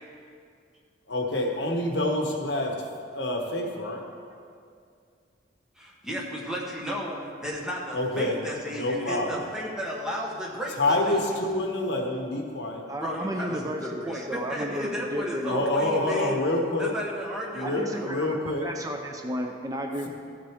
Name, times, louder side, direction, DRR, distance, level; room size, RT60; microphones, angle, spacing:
voice 1, 1.1-4.0 7.9-8.4 8.7-9.3 10.8-12.8 15.5-16.9 17.5-18.7, left 1 dB, 65° left, 2 dB, 1.2 m, -27 dB
voice 2, 5.8-11.2 13.0-16.4 16.8-18.2, equal, 5° right, -3 dB, 1.2 m, -34 dB
voice 3, 12.9-16.1 17.6-20.1, equal, 20° right, 3 dB, 0.5 m, -33 dB
13.5 x 7.6 x 3.6 m, 2.3 s
head